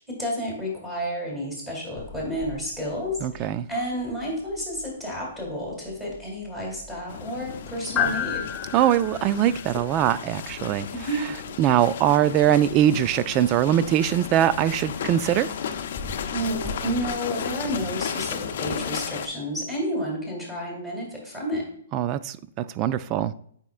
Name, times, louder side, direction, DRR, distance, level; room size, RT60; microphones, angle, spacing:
voice 1, 0.2-8.5 10.9-11.2 16.3-21.7, equal, 10° right, -4 dB, 2.6 m, -31 dB
sound 1, 2.0-17.1, left 7 dB, 20° left, 0.7 m, -37 dB
voice 2, 3.2-3.7 8.7-10.9 11.6-15.5 21.9-23.3, right 11 dB, 30° right, 15 dB, 0.3 m, -22 dB
sound 2, 7.1-19.3, left 8 dB, 60° left, 0.5 m, -34 dB
8.1 x 5.1 x 2.4 m, 0.64 s
hypercardioid pair, 140°, 0 cm